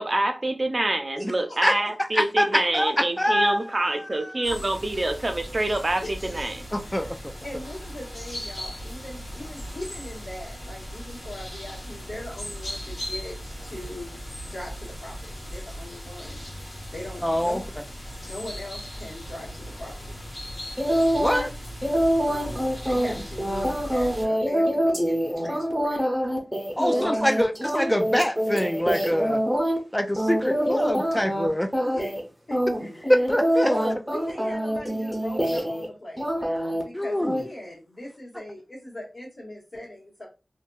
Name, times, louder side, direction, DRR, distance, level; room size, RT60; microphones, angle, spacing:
voice 1, 0.0-6.6, right 2 dB, 50° right, 0.6 m, -26 dB
voice 2, 1.2-1.6 6.0-6.1 6.4-6.5 6.8-7.1 7.4-15.2 15.5-16.5 16.9-17.8 18.2-20.1 20.6-20.7 22.2-26.1 26.8-27.5 30.1-30.2 31.8-32.1 32.5-33.3 33.6-40.2, left 1 dB, 60° left, 1.4 m, -39 dB
voice 3, 2.1-4.1 6.7-7.3 17.2-17.6 21.1-21.5 26.8-29.4 29.9-31.7 33.1-33.7 36.9-37.3, equal, 10° left, 0.3 m, -24 dB
sound 1, 4.4-24.3, equal, 80° left, 1.2 m, -38 dB
sound 2, 20.8-21.5 21.8-29.8 30.2-31.5 31.7-32.2 32.5-35.9 36.2-36.8 37.2-37.4, equal, 5° right, 1.0 m, -25 dB
2.6 x 2.6 x 2.3 m
cardioid pair, 45°, 0 cm